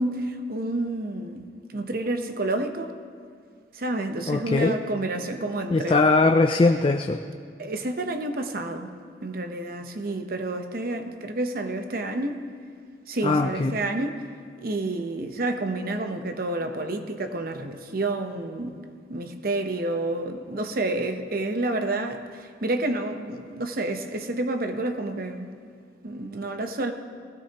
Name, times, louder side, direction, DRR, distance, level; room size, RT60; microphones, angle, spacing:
voice 1, 0.0-2.9 3.7-6.0 7.6-8.9 9.2-12.4 13.1-14.2 14.6-18.8 19.1-25.5 26.0-26.9, right 2 dB, 55° right, 6 dB, 0.9 m, -29 dB
voice 2, 4.3-4.8 5.7-7.2 13.2-13.8, left 3 dB, 30° left, 5 dB, 0.4 m, -20 dB
19.5 x 16.0 x 2.9 m, 2.1 s
head